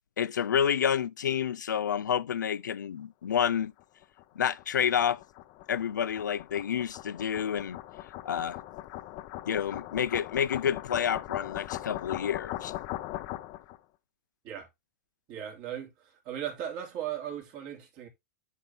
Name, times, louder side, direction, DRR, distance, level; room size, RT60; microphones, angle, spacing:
voice 1, 0.2-3.7 4.4-5.2 5.7-7.8 8.2-8.6 9.5-12.7, left 8 dB, 85° left, 0.5 m, -29 dB
sound 1, 3.8-13.8, left 16 dB, 50° left, 0.8 m, -40 dB
voice 2, 15.3-15.9 16.2-18.1, right 10 dB, 45° right, 3.1 m, -37 dB
10.5 x 4.1 x 3.4 m
hypercardioid pair, 105°, 10 cm